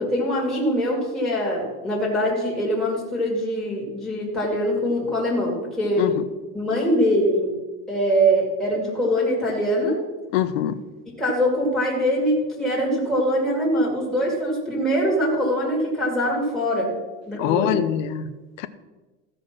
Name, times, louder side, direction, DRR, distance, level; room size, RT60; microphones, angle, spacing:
voice 1, 0.0-6.2 6.5-7.5 7.9-10.0 11.2-16.9 17.2-17.8, equal, ahead, -6 dB, 2.2 m, -23 dB
voice 2, 10.3-10.8 17.4-18.2 18.6-18.7, left 11 dB, 80° left, 13 dB, 0.8 m, -23 dB
15.0 x 5.3 x 5.9 m, 1.2 s
supercardioid pair, 160°, 38 cm